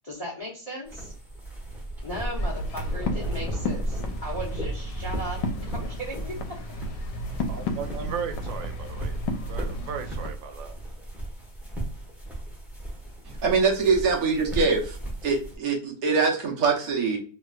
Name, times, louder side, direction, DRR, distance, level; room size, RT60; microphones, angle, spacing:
voice 1, 0.0-1.1 2.0-6.8, equal, 45° left, 0.4 m, -37 dB
sound 1, 0.9-15.6, right 1 dB, ahead, 0.7 m, -35 dB
sound 2, 2.3-10.3, left 1 dB, 75° left, 1.2 m, -34 dB
voice 2, 7.5-10.8, right 7 dB, 90° right, 1.3 m, -36 dB
voice 3, 13.2-14.8 15.2-17.2, right 4 dB, 60° right, 1.1 m, -23 dB
3.1 x 2.8 x 2.3 m
omnidirectional pair, 2.0 m